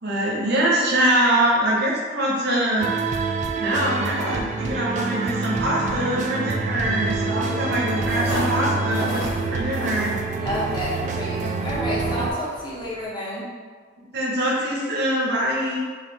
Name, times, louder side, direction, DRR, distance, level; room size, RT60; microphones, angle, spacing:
voice 1, 0.0-2.9 3.2-3.3 3.6-10.2 14.1-15.8, right 1 dB, 60° right, -4 dB, 0.9 m, -23 dB
sound 1, 2.8-12.3, right 4 dB, 40° right, 0.3 m, -26 dB
voice 2, 7.3-8.2 10.4-13.5, left 1 dB, 25° left, -7 dB, 0.9 m, -30 dB
sound 2, 8.0-13.0, equal, 85° left, 1.1 m, -35 dB
3.6 x 2.6 x 3.9 m, 1.5 s
head